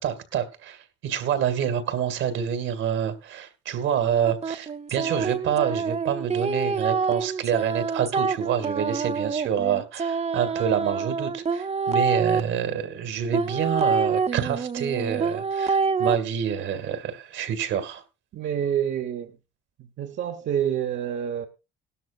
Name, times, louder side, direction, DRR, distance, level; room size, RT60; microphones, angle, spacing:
voice 1, 0.0-18.0, right 8 dB, 85° right, 2.1 m, -27 dB
sound 1, 4.2-12.4 13.3-16.1, right 5 dB, 35° right, 0.8 m, -26 dB
voice 2, 18.3-19.3 19.8-21.5, right 9 dB, 70° right, 1.0 m, -27 dB
17.0 x 12.5 x 2.4 m
cardioid pair, 90°, 20 cm